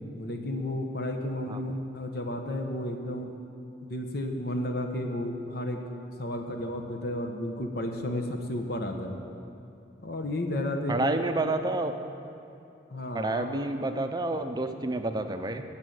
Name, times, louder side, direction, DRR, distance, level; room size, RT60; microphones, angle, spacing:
voice 1, 0.1-3.3 3.8-5.8 6.2-9.2 10.0-11.1 12.9-14.0, left 1 dB, 55° left, 4 dB, 1.1 m, -32 dB
voice 2, 10.9-11.9 13.1-15.6, right 2 dB, 20° right, 7 dB, 0.6 m, -29 dB
14.0 x 5.7 x 9.4 m, 2.7 s
head